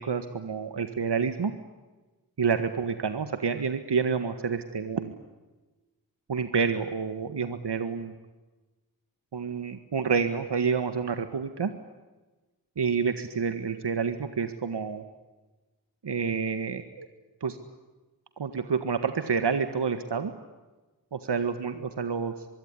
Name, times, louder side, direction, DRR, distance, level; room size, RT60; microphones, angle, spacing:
voice 1, 0.0-1.5 2.4-5.1 6.3-8.1 9.3-11.7 12.8-15.0 16.0-17.1 17.4-17.6 18.4-20.3 21.1-22.3, right 5 dB, 80° right, 9 dB, 1.8 m, -28 dB
24.5 x 23.5 x 9.8 m, 1.2 s
wide cardioid pair, 80°, 40 cm